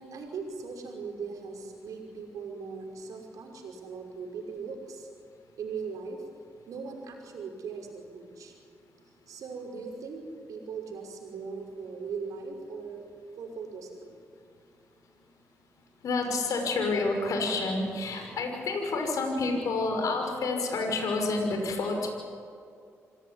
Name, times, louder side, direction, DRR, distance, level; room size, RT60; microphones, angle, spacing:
voice 1, 0.0-5.1 5.6-6.2 6.7-8.5 9.3-13.1 13.4-14.1, right 5 dB, 80° right, 2 dB, 5.6 m, -39 dB
voice 2, 16.0-22.1, left 3 dB, 75° left, 3 dB, 5.9 m, -29 dB
27.5 x 17.5 x 9.9 m, 2.4 s
supercardioid pair, 50°, 6 cm